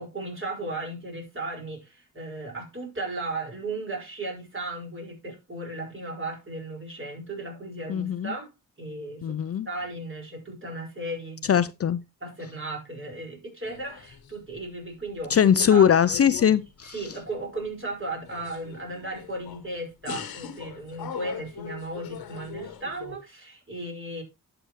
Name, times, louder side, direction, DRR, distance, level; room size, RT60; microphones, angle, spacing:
voice 1, 0.0-8.5 8.8-11.7 12.2-15.9 16.9-24.2, right 2 dB, 35° right, 5.3 m, -36 dB
voice 2, 7.9-8.3 9.2-9.7 11.4-12.0 15.3-17.0, left 8 dB, 40° left, 0.5 m, -21 dB
sound 1, 13.6-14.7 15.0-17.7 18.1-19.7 20.1-23.2, left 9 dB, 90° left, 1.2 m, -41 dB
11.0 x 6.9 x 3.1 m
cardioid pair, 60°, 35 cm